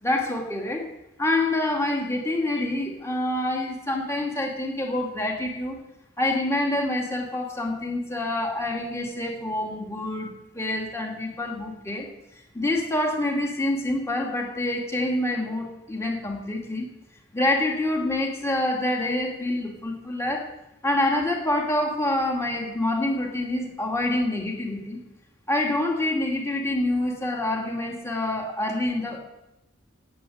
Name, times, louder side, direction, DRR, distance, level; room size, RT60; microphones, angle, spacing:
voice 1, 0.0-0.8 1.2-5.8 6.2-12.1 12.3-16.9 17.3-20.5 20.8-25.0 25.5-29.2, left 1 dB, 15° left, 0 dB, 2.4 m, -26 dB
18.0 x 8.3 x 7.9 m, 0.94 s
head